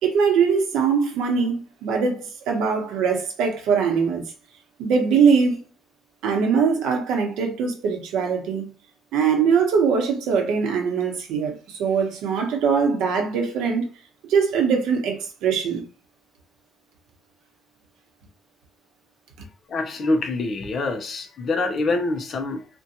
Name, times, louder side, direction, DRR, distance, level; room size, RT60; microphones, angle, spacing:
voice 1, 0.0-4.2 4.8-5.6 6.2-8.7 9.1-13.9 14.3-15.8, right 6 dB, 85° right, 0.8 m, -22 dB
voice 2, 19.7-22.7, left 2 dB, 40° left, 0.4 m, -25 dB
2.6 x 2.2 x 2.7 m
cardioid pair, 150°, 0 cm